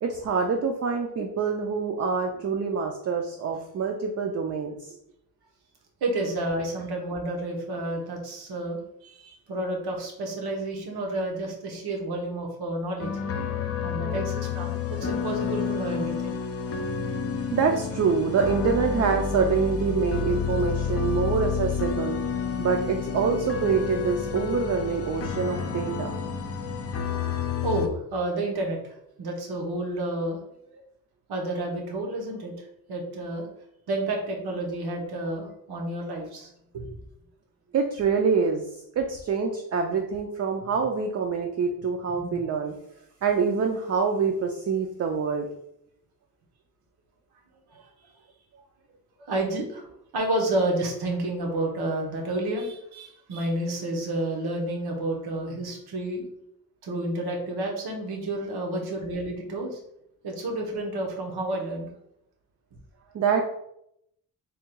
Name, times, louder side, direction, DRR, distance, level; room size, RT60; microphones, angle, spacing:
voice 1, 0.0-5.0 13.4-13.5 14.0-14.2 17.5-22.2 22.6-26.1 37.7-38.6 39.0-42.7 43.2-45.5 63.1-63.5, right 5 dB, 45° right, 3 dB, 0.4 m, -26 dB
voice 2, 6.0-13.1 13.8-16.3 27.6-30.4 30.7-30.8 31.3-33.5 33.9-36.9 42.1-42.4 49.2-49.9 50.1-56.2 56.8-59.8 60.2-61.9, right 1 dB, 90° right, 0 dB, 1.0 m, -30 dB
sound 1, 13.0-27.9, left 6 dB, 40° left, 0.4 m, -30 dB
3.6 x 2.2 x 4.4 m, 0.77 s
wide cardioid pair, 140°, 37 cm